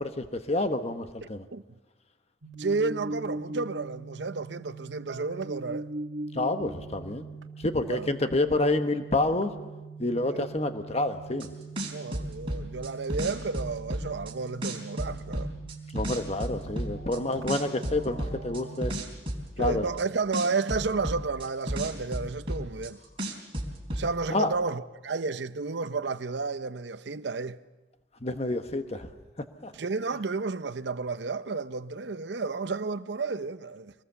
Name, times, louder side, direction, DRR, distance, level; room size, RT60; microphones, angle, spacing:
voice 1, 0.0-1.4 6.3-7.2 7.6-9.5 10.0-11.5 15.9-18.9 19.6-19.9 24.3-24.5 28.2-29.1 29.6-29.7, left 2 dB, 35° left, 1.2 m, -28 dB
sound 1, 2.4-18.8, right 3 dB, 85° right, 1.5 m, -41 dB
voice 2, 2.6-5.9 7.9-8.1 10.3-10.5 11.9-15.5 17.2-17.3 19.6-23.0 24.0-27.6 29.7-33.9, right 4 dB, 65° right, 0.7 m, -32 dB
sound 2, 11.4-11.5 11.8-14.3 14.6-17.2 17.5-20.0 20.3-22.9 23.2-24.1, right 1 dB, 30° right, 3.8 m, -32 dB
25.0 x 20.0 x 7.0 m
head